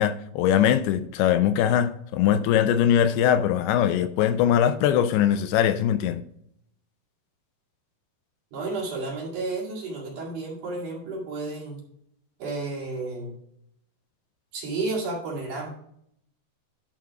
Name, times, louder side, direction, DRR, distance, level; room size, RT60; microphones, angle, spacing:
voice 1, 0.0-6.2, left 10 dB, 85° left, 2.5 m, -21 dB
voice 2, 8.5-11.8 12.4-13.3 14.5-15.7, right 3 dB, 55° right, 3.5 m, -32 dB
11.5 x 4.0 x 4.7 m
omnidirectional pair, 4.7 m